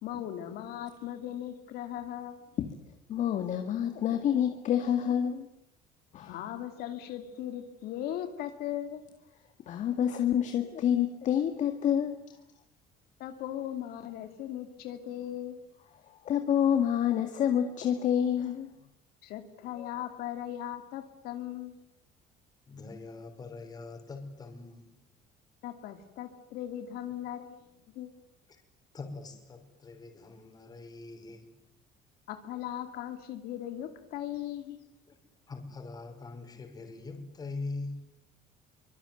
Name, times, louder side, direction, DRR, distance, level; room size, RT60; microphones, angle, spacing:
voice 1, 0.0-2.4 6.3-9.0 13.2-15.6 19.2-21.8 25.6-27.6 28.0-28.1 32.3-34.9, left 11 dB, 70° left, 7 dB, 2.6 m, -38 dB
voice 2, 3.1-5.5 6.1-6.4 9.7-12.2 16.2-18.7 19.8-19.9, left 9 dB, 50° left, 7 dB, 2.1 m, -28 dB
voice 3, 22.7-24.9 28.5-28.6 28.9-31.5 35.1-35.2 35.5-38.1, left 3 dB, 25° left, 5 dB, 5.7 m, -42 dB
24.5 x 24.5 x 9.3 m, 0.84 s
cardioid pair, 155°, 17 cm